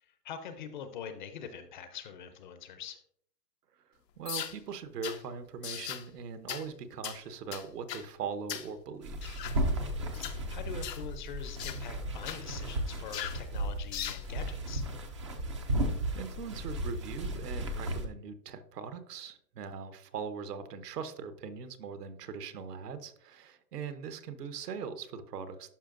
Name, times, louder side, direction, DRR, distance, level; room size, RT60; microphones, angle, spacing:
voice 1, 0.0-3.0 10.5-14.8, left 7 dB, 30° left, 9 dB, 0.5 m, -44 dB
voice 2, 4.2-9.4 16.1-25.7, right 6 dB, 70° right, 10 dB, 1.1 m, -41 dB
sound 1, 4.3-4.6 5.0-5.2 5.6-6.1 6.5-6.7 7.0-7.2 7.5-8.1 8.5-8.7 9.2-9.6 10.1-10.4 10.8-11.1 11.6-11.8 12.3-12.4 13.1-13.4 13.9-14.2, left 10 dB, 90° left, 0.8 m, -38 dB
sound 2, 9.0-18.0, right 1 dB, 20° right, 0.4 m, -35 dB
11.5 x 5.0 x 2.5 m, 0.64 s
hypercardioid pair, 135°, 49 cm